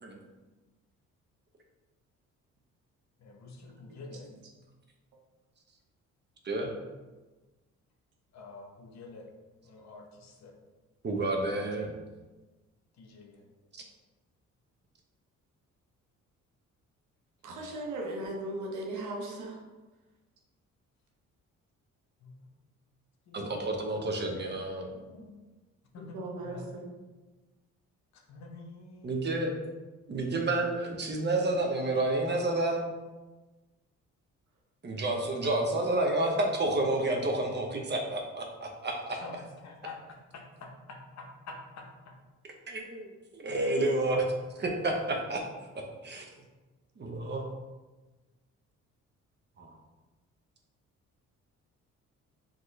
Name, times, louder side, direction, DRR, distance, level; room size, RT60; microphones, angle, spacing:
voice 1, 3.2-4.2 8.3-9.2 9.6-10.5 13.0-13.4 22.2-22.3 23.3-23.6 24.9-25.4 25.9-26.7 28.1-29.7 39.2-39.4 39.6-39.9 40.6-41.8, left 3 dB, 60° left, 2 dB, 0.8 m, -47 dB
voice 2, 11.0-11.9 13.7-13.8 23.3-24.9 29.0-29.5 30.1-32.8 34.8-39.2 42.7-44.2 44.6-45.4 45.7-46.2 47.0-47.5 49.6-49.7, right 2 dB, 35° right, 2 dB, 0.8 m, -30 dB
voice 3, 17.4-19.6 26.1-26.9, right 1 dB, 80° right, 0 dB, 0.9 m, -37 dB
4.4 x 3.0 x 3.1 m, 1.2 s
cardioid pair, 90°, 30 cm